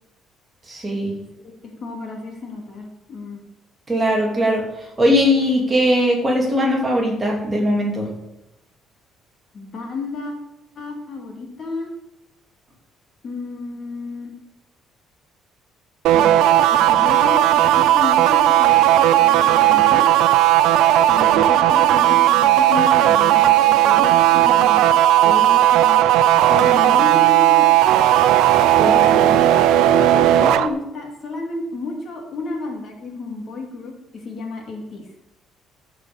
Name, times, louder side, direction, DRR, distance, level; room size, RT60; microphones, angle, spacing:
voice 1, 0.7-1.2 3.9-4.7 5.0-8.1 28.8-28.9 29.2-29.3, equal, 15° right, -1 dB, 2.6 m, -19 dB
voice 2, 1.8-3.4 9.5-10.3 10.8-11.9 13.2-14.4 16.1-16.3 16.7-18.9 19.2-20.1 21.1-24.8 25.2-26.0 26.5-27.7 28.8-29.3 30.1-35.1, left 3 dB, 35° left, 1 dB, 2.4 m, -31 dB
sound 1, 16.0-30.7, right 12 dB, 90° right, 0.7 m, -15 dB
14.5 x 5.6 x 7.1 m, 0.88 s
cardioid pair, 170°, 0 cm